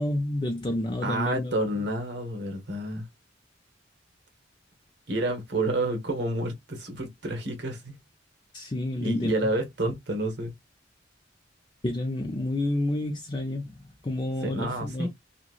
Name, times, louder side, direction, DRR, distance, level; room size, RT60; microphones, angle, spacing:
voice 1, 0.0-1.5 8.5-9.3 11.8-15.1, left 1 dB, 25° left, 0.5 m, -29 dB
voice 2, 1.0-3.0 5.1-7.9 9.0-10.5 14.4-15.1, right 1 dB, 60° right, 1.1 m, -29 dB
2.9 x 2.8 x 2.3 m
head